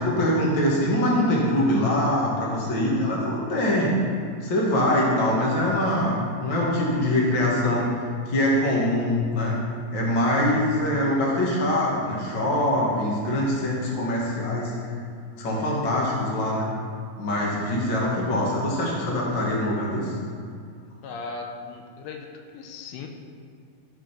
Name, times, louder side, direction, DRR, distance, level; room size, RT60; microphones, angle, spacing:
voice 1, 0.0-4.0 4.4-9.5 9.9-14.9 15.4-16.7 17.2-20.1, left 1 dB, 35° left, -4 dB, 2.0 m, -23 dB
voice 2, 21.0-22.3 22.5-23.1, left 4 dB, 85° left, 3 dB, 3.0 m, -37 dB
15.0 x 5.3 x 5.2 m, 2.3 s
omnidirectional pair, 4.8 m